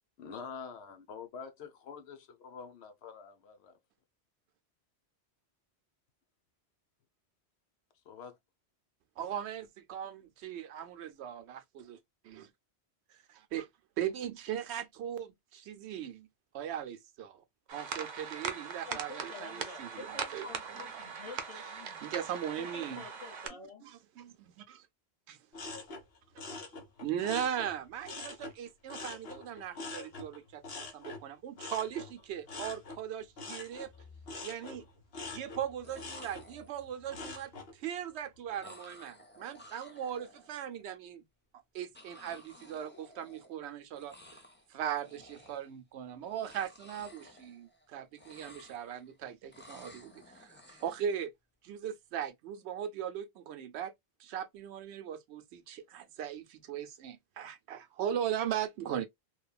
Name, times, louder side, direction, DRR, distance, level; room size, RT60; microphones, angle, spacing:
voice 1, 0.2-3.8 8.1-8.3, left 6 dB, 80° left, 1.0 m, -46 dB
voice 2, 9.2-12.0 12.2-12.5 13.1-13.7 14.0-16.3 16.5-17.4 17.7-20.5 22.0-23.0 23.8-24.9 25.3-25.4 27.0-30.6 30.9-33.9 34.4-34.8 35.3-41.2 41.7-44.1 44.7-51.3 51.6-53.9 54.2-59.1, right 9 dB, 85° right, 0.9 m, -39 dB
sound 1, 17.7-23.5, right 6 dB, 50° right, 0.6 m, -41 dB
voice 3, 18.8-22.0 22.6-23.8, left 4 dB, 35° left, 0.8 m, -48 dB
sound 2, 25.5-28.6 28.9-37.7 38.1-38.6, left 3 dB, 65° left, 1.1 m, -45 dB
sound 3, 33.9-34.5 35.6-35.7 35.8-37.0 38.6-40.8 41.9-43.7 43.9-44.7 45.0-45.8 46.2-47.9 48.1-49.1 49.5-51.1, left 1 dB, 15° left, 0.4 m, -55 dB
3.0 x 2.2 x 2.2 m
omnidirectional pair, 1.1 m